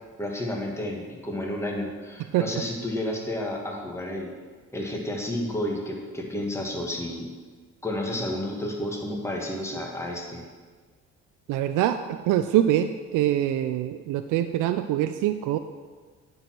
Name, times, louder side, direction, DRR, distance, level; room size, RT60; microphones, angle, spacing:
voice 1, 0.2-4.3 4.7-7.3 7.8-10.4, left 1 dB, 10° left, -1 dB, 1.7 m, -31 dB
voice 2, 11.5-15.6, right 12 dB, 85° right, 9 dB, 0.5 m, -24 dB
9.5 x 4.8 x 6.0 m, 1.5 s
cardioid pair, 90°, 30 cm